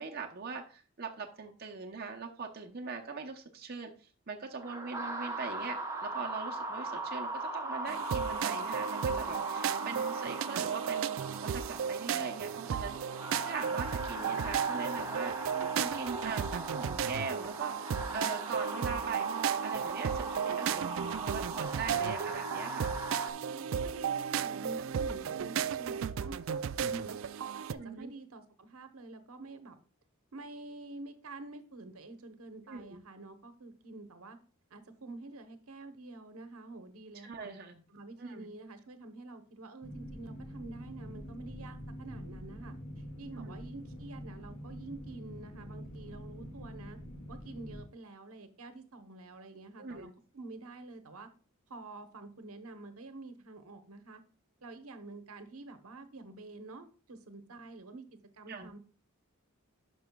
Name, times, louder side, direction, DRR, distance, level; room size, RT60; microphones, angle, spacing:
voice 1, 0.0-3.9 4.3-11.2 11.4-15.5 15.7-20.9 21.2-23.0 27.8-28.1 32.7-32.8 37.2-37.8 38.2-38.5 43.3-43.5 49.8-50.1 58.5-58.7, right 4 dB, 45° right, 2 dB, 0.7 m, -41 dB
sound 1, 4.6-23.3, right 2 dB, 15° right, 0.8 m, -39 dB
sound 2, 7.9-27.7, right 7 dB, 60° right, 0.3 m, -35 dB
voice 2, 21.9-22.7 23.4-27.2 27.5-29.8 30.3-34.4 34.7-37.5 37.9-47.0 47.3-51.3 51.7-54.2 54.6-58.0 58.3-58.8, right 2 dB, 75° right, 9 dB, 1.0 m, -48 dB
sound 3, 39.8-47.8, equal, 70° left, 1.9 m, -45 dB
10.5 x 6.2 x 2.3 m, 0.37 s
head